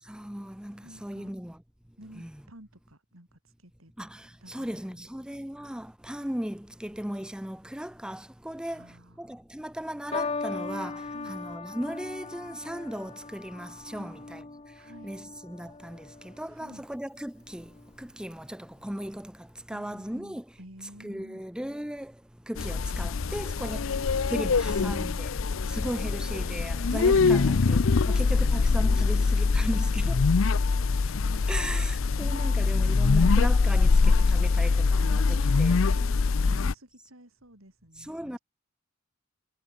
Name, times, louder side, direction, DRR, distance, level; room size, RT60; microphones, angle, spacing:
voice 1, 0.1-1.6 2.2-2.4 4.0-8.9 9.2-14.4 15.0-17.7 18.0-20.4 21.0-22.1 22.5-25.3 25.7-30.2 31.5-35.8 36.5-36.6 38.1-38.4, equal, 5° right, 0.7 m, -37 dB
voice 2, 0.8-1.3 2.0-3.9 4.4-5.1 8.7-9.4 11.1-11.4 13.9-15.1 16.5-16.9 19.7-21.4 23.5-24.0 24.3-25.0 25.4-25.9 28.4-29.7 31.2-31.5 32.3-33.0 35.4-38.4, right 1 dB, 85° right, 7.8 m, -52 dB
sound 1, 10.1-16.6 17.5-17.9, left 4 dB, 30° left, 0.7 m, -38 dB
sound 2, 22.6-36.7, left 4 dB, 75° left, 0.6 m, -23 dB
head